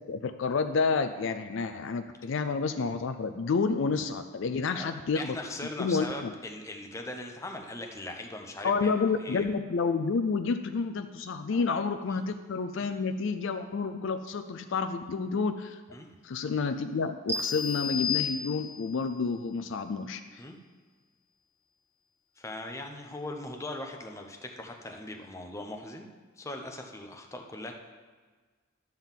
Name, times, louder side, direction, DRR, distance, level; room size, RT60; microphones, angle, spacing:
voice 1, 0.1-5.4 5.8-6.3 8.6-15.8 16.2-20.4, left 4 dB, 55° left, 8 dB, 0.4 m, -29 dB
voice 2, 4.7-8.9 9.2-9.4 11.5-11.6 12.1-12.2 12.8-12.9 15.9-16.1 20.4-20.6 22.4-26.1 26.4-27.8, left 2 dB, 15° left, 3 dB, 0.7 m, -40 dB
sound 1, 17.3-19.0, left 6 dB, 10° right, 0.4 m, -32 dB
11.5 x 3.9 x 7.2 m, 1.4 s
head